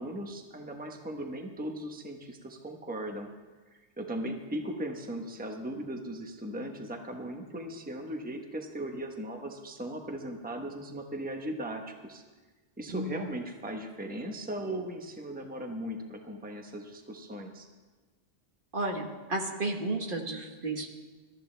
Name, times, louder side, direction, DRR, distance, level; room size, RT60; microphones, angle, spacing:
voice 1, 0.0-3.3 3.7-12.2 12.8-17.7, right 1 dB, 10° right, 3 dB, 1.1 m, -38 dB
voice 2, 18.7-20.9, right 2 dB, 50° right, 2 dB, 1.6 m, -32 dB
23.0 x 14.0 x 3.4 m, 1.3 s
omnidirectional pair, 1.2 m